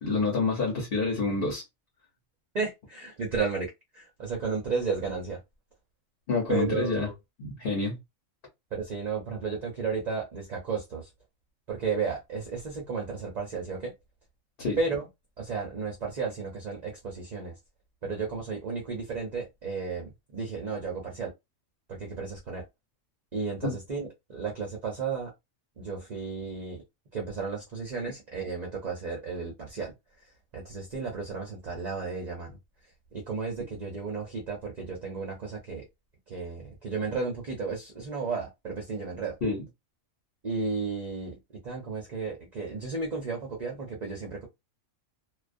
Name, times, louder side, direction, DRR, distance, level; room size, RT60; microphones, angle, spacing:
voice 1, 0.0-1.6 6.3-7.1 7.4-8.0 14.6-14.8 23.6-23.7 39.4-39.6, left 3 dB, 50° left, 0.9 m, -27 dB
voice 2, 2.5-5.4 6.5-7.1 8.7-11.1 11.7-13.9 14.8-15.0 15.4-17.5 18.0-21.3 21.9-22.6 23.3-25.3 25.8-26.8 27.1-29.9 30.5-32.6 33.1-35.8 36.3-39.3 40.4-41.4 41.6-44.5, right 4 dB, 45° right, 0.6 m, -33 dB
2.3 x 2.2 x 2.5 m
omnidirectional pair, 1.4 m